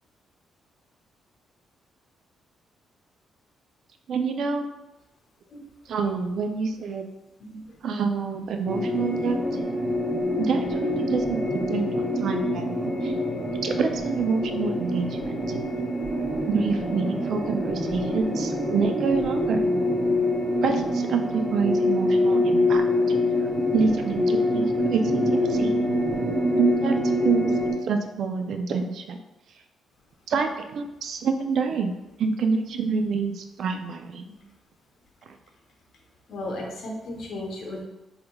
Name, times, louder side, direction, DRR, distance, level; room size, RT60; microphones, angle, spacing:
voice 1, 4.1-4.7 5.9-7.1 7.8-9.9 10.4-11.4 11.7-13.1 13.6-15.2 15.5-15.6 16.5-19.6 20.6-23.2 23.7-25.7 26.6-29.2 30.3-31.9 32.2-34.2, right 5 dB, 65° right, 6 dB, 0.3 m, -27 dB
sound 1, 8.7-27.7, left 1 dB, 10° right, 0.8 m, -25 dB
voice 2, 36.3-37.8, left 1 dB, 65° left, -1 dB, 0.8 m, -35 dB
3.5 x 2.9 x 2.2 m, 1.0 s
cardioid pair, 90°, 0 cm